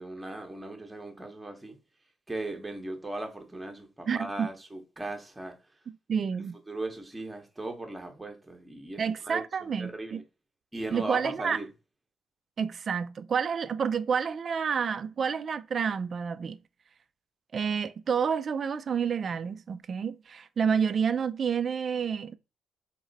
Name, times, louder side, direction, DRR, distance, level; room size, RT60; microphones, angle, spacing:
voice 1, 0.0-1.8 2.3-5.6 6.7-10.2 10.7-11.7, right 2 dB, 10° right, 0.8 m, -38 dB
voice 2, 4.1-4.5 6.1-6.6 9.0-10.2 10.9-11.6 12.6-16.6 17.5-22.3, right 6 dB, 40° right, 0.3 m, -29 dB
4.0 x 3.0 x 3.9 m
cardioid pair, 155°, 0 cm